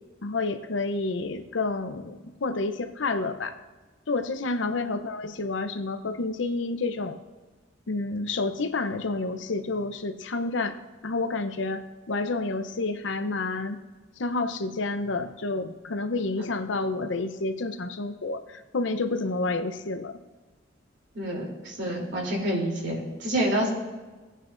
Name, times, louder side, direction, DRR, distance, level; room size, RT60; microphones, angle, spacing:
voice 1, 0.2-3.6 4.1-7.2 7.9-10.8 11.0-13.8 14.2-20.1, left 3 dB, 70° left, 9 dB, 0.7 m, -29 dB
voice 2, 21.1-23.7, right 1 dB, 60° right, -1 dB, 3.1 m, -28 dB
17.5 x 9.0 x 2.5 m, 1.3 s
head